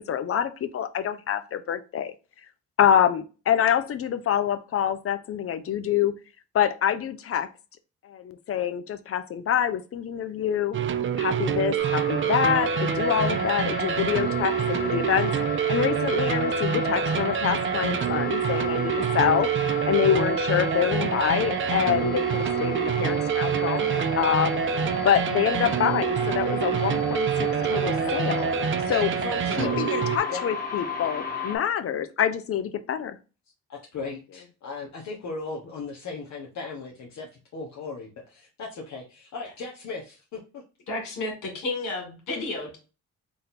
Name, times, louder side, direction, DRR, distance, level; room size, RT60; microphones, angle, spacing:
voice 1, 0.0-2.1 2.8-6.2 6.5-7.5 8.0-10.8 11.2-15.3 15.7-19.5 19.9-24.6 25.0-28.5 28.9-29.1 29.6-33.2, left 9 dB, 50° left, 11 dB, 0.6 m, -26 dB
sound 1, 10.7-30.2, right 8 dB, 40° right, 0.5 m, -26 dB
sound 2, 11.8-31.6, left 3 dB, 30° left, 1.6 m, -34 dB
voice 2, 28.9-29.8 30.3-30.4 33.7-37.3 37.5-40.6, left 4 dB, 65° left, -1 dB, 1.1 m, -37 dB
voice 3, 40.9-42.8, left 2 dB, 90° left, 1 dB, 2.1 m, -31 dB
3.9 x 2.6 x 4.1 m, 0.31 s
cardioid pair, 90°, 30 cm